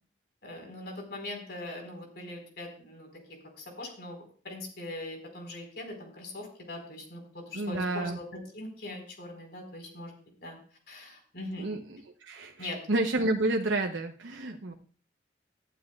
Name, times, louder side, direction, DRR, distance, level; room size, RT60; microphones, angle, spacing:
voice 1, 0.4-3.1 3.6-10.1 10.4-10.6 10.9-11.7 12.6-12.8 14.7-14.8, left 1 dB, 55° left, 2 dB, 4.6 m, -41 dB
voice 2, 7.5-8.2 11.6-14.7, right 2 dB, 80° right, 2 dB, 0.9 m, -30 dB
19.0 x 12.0 x 2.4 m, 0.42 s
head